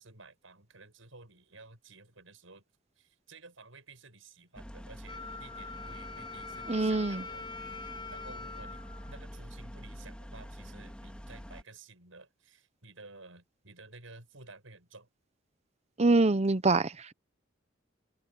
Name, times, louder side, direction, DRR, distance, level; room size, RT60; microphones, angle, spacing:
voice 1, 0.0-2.6 3.0-7.4 8.1-15.1, right 3 dB, 75° right, 7.7 m, -53 dB
sound 1, 4.5-11.6, equal, 5° left, 2.1 m, -46 dB
Wind instrument woodwind instrument, 5.1-9.9, left 4 dB, 25° left, 6.1 m, -44 dB
voice 2, 6.7-7.2 16.0-17.1, right 3 dB, 35° right, 0.8 m, -25 dB
head